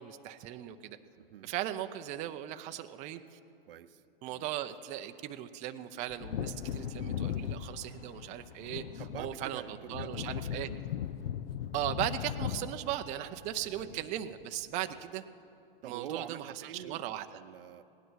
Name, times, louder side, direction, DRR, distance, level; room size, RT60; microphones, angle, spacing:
voice 1, 0.0-1.0 1.4-3.4 4.2-10.7 11.7-15.2 15.8-17.4, right 12 dB, 25° right, 8 dB, 0.5 m, -38 dB
voice 2, 1.2-1.5 3.7-4.0 4.3-4.5 9.0-10.8 13.8-14.1 15.0-15.1 15.8-17.8, right 10 dB, 70° right, 13 dB, 0.7 m, -46 dB
Wind / Thunder, 6.1-14.3 14.6-14.7, left 9 dB, 70° left, 0.6 m, -38 dB
18.0 x 10.5 x 6.3 m, 2.8 s
hypercardioid pair, 125°, 30 cm